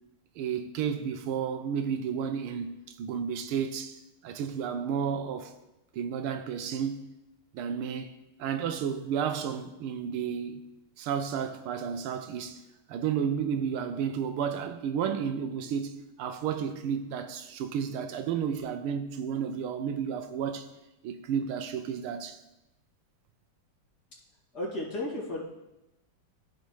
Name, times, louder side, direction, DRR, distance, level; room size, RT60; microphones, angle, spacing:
voice 1, 0.4-5.5 5.9-7.0 7.5-8.1 8.4-10.6 11.0-12.6 12.9-20.7 21.0-22.4, right 7 dB, 85° right, 1.5 m, -32 dB
voice 2, 24.5-25.4, left 1 dB, 50° left, 2.7 m, -33 dB
14.5 x 5.2 x 3.1 m
omnidirectional pair, 2.4 m